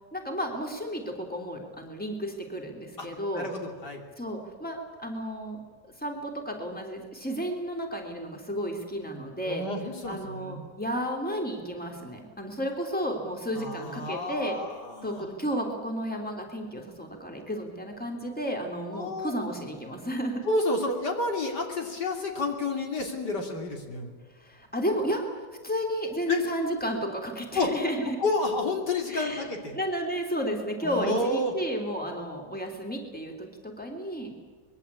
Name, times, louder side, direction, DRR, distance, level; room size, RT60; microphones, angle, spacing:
voice 1, 0.1-3.5 4.2-9.6 10.0-14.6 15.0-20.4 24.4-28.2 29.1-29.4 29.7-34.3, equal, 5° left, 2 dB, 3.6 m, -32 dB
voice 2, 3.3-4.0 9.4-10.7 13.5-15.3 18.9-19.3 20.5-24.2 26.3-26.4 27.5-27.7 28.0-29.8 30.8-31.5, left 2 dB, 70° left, 3 dB, 3.7 m, -30 dB
24.5 x 22.0 x 8.6 m, 1.4 s
omnidirectional pair, 1.9 m